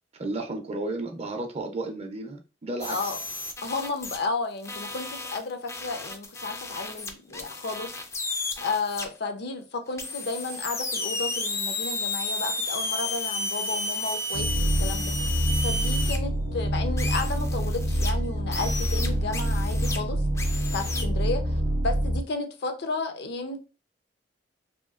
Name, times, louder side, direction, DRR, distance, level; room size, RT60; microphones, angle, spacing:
voice 1, 0.1-3.1, right 2 dB, 35° right, 0.5 m, -33 dB
sound 1, 2.8-4.3 4.6-9.1 10.0-16.2 17.0-18.1 18.5-20.0 20.4-21.0, left 2 dB, 15° left, 0.4 m, -33 dB
voice 2, 2.9-3.2 3.6-7.9 8.6-15.1 15.6-20.2 20.7-23.6, left 3 dB, 65° left, 0.6 m, -33 dB
sound 2, 14.3-22.2, equal, 80° right, 0.5 m, -26 dB
2.9 x 2.7 x 2.4 m
head